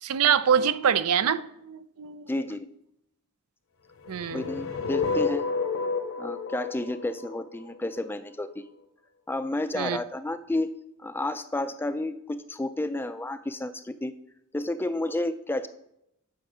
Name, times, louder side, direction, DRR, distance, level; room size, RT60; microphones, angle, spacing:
voice 1, 0.0-2.3 4.1-4.5 9.7-10.0, right 8 dB, 80° right, 0.4 m, -25 dB
voice 2, 2.3-2.7 4.3-5.4 6.2-8.6 9.3-10.7 11.0-14.1 14.5-15.7, left 2 dB, 10° left, 0.3 m, -31 dB
sound 1, 4.0-8.1, left 4 dB, 65° left, 0.8 m, -30 dB
8.5 x 6.6 x 4.9 m
head